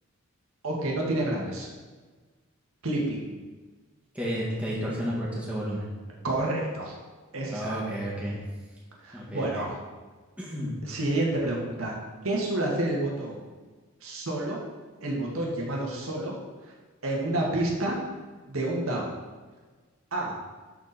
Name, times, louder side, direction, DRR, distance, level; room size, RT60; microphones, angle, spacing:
voice 1, 0.6-1.7 2.8-3.3 6.2-6.9 7.3-7.8 9.0-9.7 10.8-12.0 12.2-13.4 14.0-14.6 15.0-16.3 17.0-18.0 18.5-19.1 20.1-20.3, right 1 dB, 75° right, -2 dB, 1.8 m, -29 dB
voice 2, 4.2-5.9 7.5-8.4 9.1-9.6 10.4-10.8, equal, 5° right, -6 dB, 1.9 m, -31 dB
12.0 x 4.4 x 4.2 m, 1.4 s
head